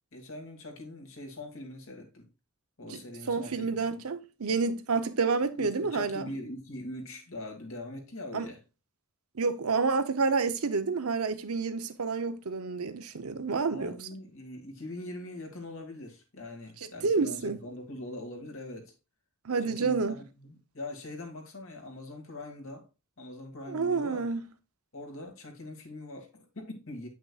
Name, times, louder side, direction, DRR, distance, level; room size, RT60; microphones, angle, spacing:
voice 1, 0.1-2.3 2.8-3.8 5.6-8.6 13.6-18.9 19.6-22.9 23.2-24.3 24.9-27.1, left 1 dB, 65° left, 2.1 m, -42 dB
voice 2, 3.3-6.3 8.3-8.5 9.4-14.0 16.8-17.6 19.4-20.2 23.7-24.5, right 4 dB, 85° right, 0.8 m, -29 dB
8.5 x 5.8 x 2.4 m
head